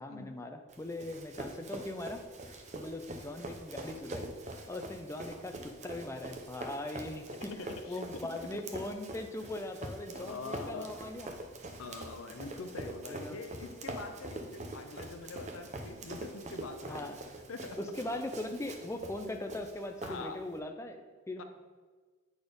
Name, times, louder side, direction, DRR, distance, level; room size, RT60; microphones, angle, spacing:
voice 1, 0.0-2.2 2.7-4.3 4.7-11.3 12.8-13.4 16.9-17.2 17.7-21.4, left 1 dB, 15° left, 5 dB, 0.5 m, -40 dB
Run, 0.7-20.6, right 2 dB, 35° right, 0.7 m, -44 dB
voice 2, 7.5-8.3 10.1-10.9 11.8-17.2 17.5-17.8 20.0-20.4 21.4-21.5, left 3 dB, 80° left, 7 dB, 0.6 m, -44 dB
8.6 x 4.2 x 5.2 m, 1.4 s
head